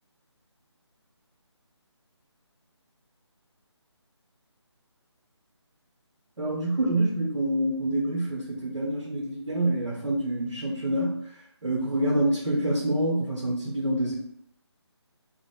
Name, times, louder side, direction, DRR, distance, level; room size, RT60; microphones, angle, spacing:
voice 1, 6.4-11.3 11.6-14.1, right 1 dB, 80° right, -3 dB, 0.7 m, -26 dB
2.5 x 2.0 x 3.2 m, 0.70 s
figure-of-eight pair, 160°, 15 cm